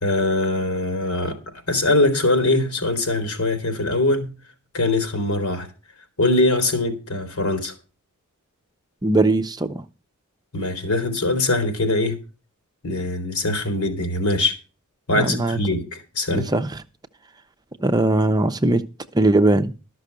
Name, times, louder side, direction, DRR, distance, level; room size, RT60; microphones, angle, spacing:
voice 1, 0.0-1.4 1.7-4.3 4.7-5.7 6.2-7.7 10.5-12.2 12.8-14.5 15.1-16.5, left 2 dB, 80° left, 3.3 m, -22 dB
voice 2, 9.0-9.8 15.1-15.6 16.3-16.8 17.8-18.8 19.1-19.7, right 2 dB, 20° right, 0.7 m, -20 dB
13.0 x 6.1 x 6.6 m
head